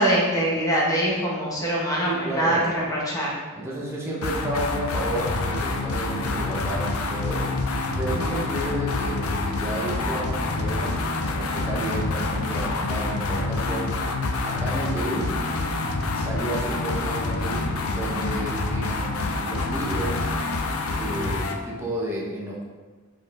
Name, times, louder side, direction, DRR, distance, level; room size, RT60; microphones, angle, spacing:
voice 1, 0.0-3.3, right 1 dB, 15° left, -5 dB, 1.5 m, -23 dB
voice 2, 1.9-2.7 3.5-7.5 8.0-14.0 14.4-15.3 16.1-20.2 21.0-22.7, right 1 dB, 10° right, -5 dB, 1.2 m, -31 dB
sound 1, 4.2-21.6, left 3 dB, 90° left, 0.6 m, -27 dB
5.7 x 5.0 x 3.6 m, 1.3 s
head